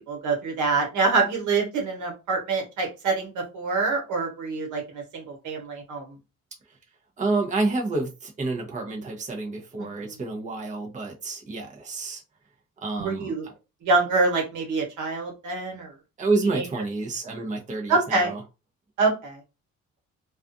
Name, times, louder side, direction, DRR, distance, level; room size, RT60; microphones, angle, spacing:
voice 1, 0.1-6.2 9.8-9.9 13.0-13.4 13.8-15.9 16.5-16.6 17.9-18.3 19.0-19.4, right 3 dB, 80° right, 1.2 m, -25 dB
voice 2, 7.2-12.2 12.8-13.5 16.2-18.4, right 3 dB, 25° right, 0.7 m, -29 dB
2.4 x 2.3 x 2.5 m
cardioid pair, 90°, 30 cm